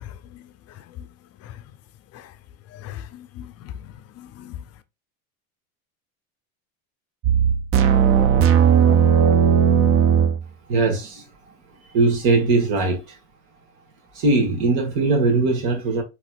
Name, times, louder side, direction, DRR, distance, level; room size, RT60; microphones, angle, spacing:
voice 1, 2.7-4.6, left 11 dB, 35° left, 0.5 m, -39 dB
sound 1, 7.2-10.4, right 8 dB, 35° right, 0.4 m, -16 dB
voice 2, 10.7-11.5 11.8-13.2 14.1-16.0, right 3 dB, 60° right, 1.4 m, -20 dB
4.1 x 3.0 x 2.3 m
supercardioid pair, 120°, 42 cm